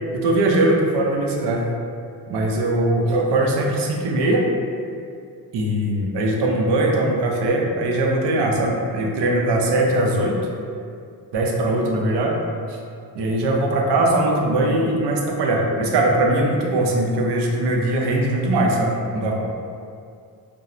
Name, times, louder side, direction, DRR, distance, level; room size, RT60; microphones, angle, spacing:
voice 1, 0.1-1.6 2.3-4.5 5.5-10.4 11.3-12.4 12.7-12.8 13.1-19.5, right 1 dB, 80° right, 0 dB, 0.5 m, -20 dB
2.9 x 2.0 x 2.4 m, 2.3 s
cardioid pair, 95°, 41 cm